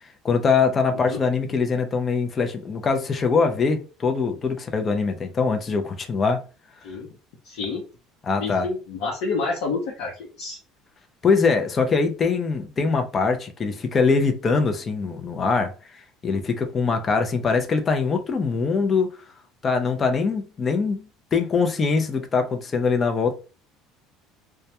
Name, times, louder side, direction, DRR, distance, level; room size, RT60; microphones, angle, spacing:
voice 1, 0.2-6.4 8.2-8.7 11.2-15.7 16.2-19.2 19.6-21.1 21.3-23.3, left 4 dB, 30° left, 0.5 m, -22 dB
voice 2, 7.4-7.8 8.3-10.6, left 4 dB, 80° left, 0.8 m, -29 dB
2.2 x 2.1 x 2.8 m
cardioid pair, 125°, 0 cm